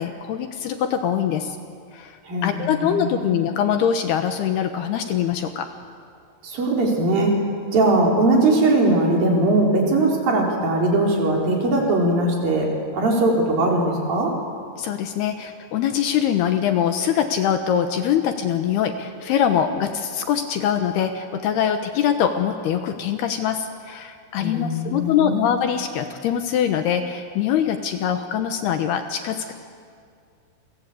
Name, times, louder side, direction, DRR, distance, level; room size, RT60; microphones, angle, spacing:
voice 1, 0.0-1.6 1.9-5.7 14.8-29.5, left 9 dB, 70° left, 7 dB, 2.9 m, -23 dB
voice 2, 2.2-3.3 6.4-7.4 7.7-14.4 24.4-25.4, right 2 dB, 50° right, -1 dB, 5.5 m, -20 dB
29.5 x 23.0 x 8.5 m, 2.2 s
omnidirectional pair, 5.3 m